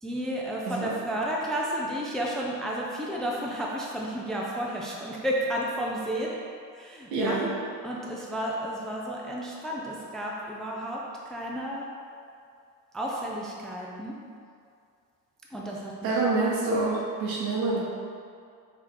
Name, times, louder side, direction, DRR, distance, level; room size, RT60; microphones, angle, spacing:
voice 1, 0.0-6.3 6.8-7.4 7.8-11.0 11.3-11.9 12.9-14.1 15.5-16.1, right 1 dB, ahead, -3 dB, 0.5 m, -32 dB
voice 2, 7.1-7.5 16.0-17.8, right 3 dB, 70° right, -4 dB, 1.1 m, -26 dB
4.5 x 2.8 x 3.8 m, 2.3 s
figure-of-eight pair, 60°, 50 cm